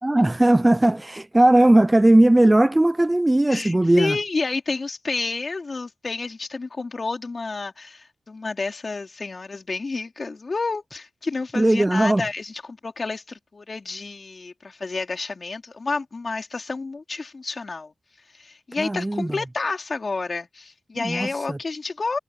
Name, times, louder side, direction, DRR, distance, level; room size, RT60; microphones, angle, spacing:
voice 1, 0.0-4.2 11.6-12.2 18.8-19.3 21.0-21.6, right 1 dB, 20° right, 0.5 m, -18 dB
voice 2, 3.5-17.9 18.3-22.2, left 3 dB, 55° left, 4.0 m, -30 dB
cardioid pair, 40°, 0 cm